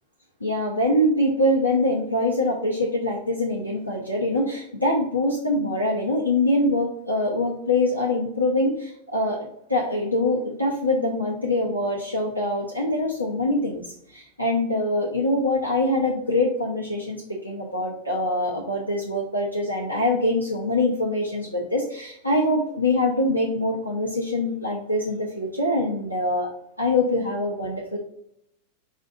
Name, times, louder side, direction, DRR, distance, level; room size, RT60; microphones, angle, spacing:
voice 1, 0.4-17.2 17.4-26.5 26.8-28.0, left 1 dB, 90° left, -3 dB, 0.8 m, -24 dB
5.3 x 2.6 x 3.7 m, 0.73 s
figure-of-eight pair, 90°, 0 cm